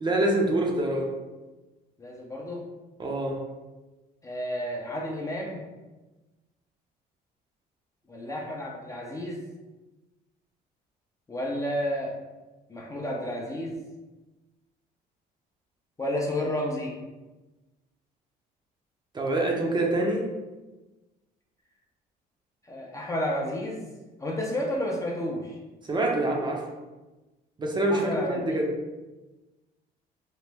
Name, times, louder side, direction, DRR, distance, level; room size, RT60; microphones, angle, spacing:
voice 1, 0.0-1.1 3.0-3.4 19.1-20.2 25.9-26.6 27.6-28.7, right 1 dB, 25° right, 0 dB, 0.6 m, -25 dB
voice 2, 2.0-2.6 4.2-5.6 8.1-9.4 11.3-12.2 12.7-13.8 16.0-16.9 22.6-23.9 24.2-25.6 27.9-28.6, left 1 dB, 20° left, -1 dB, 0.5 m, -31 dB
2.9 x 2.1 x 3.3 m, 1.1 s
cardioid pair, 110°, 17 cm